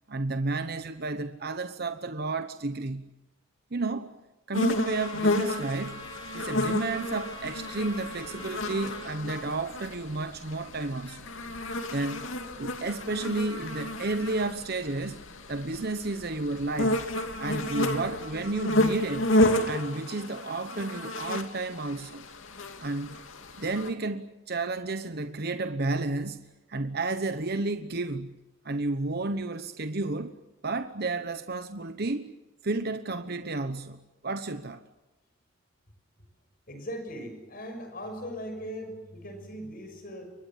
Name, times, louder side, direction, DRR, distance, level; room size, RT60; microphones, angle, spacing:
voice 1, 0.1-3.1 3.7-4.2 4.5-11.3 11.9-12.3 12.6-15.2 15.5-17.1 17.4-19.3 19.6-22.3 22.8-23.2 23.6-28.4 28.6-30.4 30.6-32.3 32.6-34.8, right 2 dB, 50° right, 1.1 m, -32 dB
sound 1, 4.5-23.9, left 1 dB, 70° left, 2.8 m, -31 dB
Trumpet, 4.9-9.1, equal, 25° left, 5.1 m, -45 dB
voice 2, 36.7-40.3, equal, 45° left, 6.1 m, -39 dB
29.5 x 23.5 x 7.5 m
head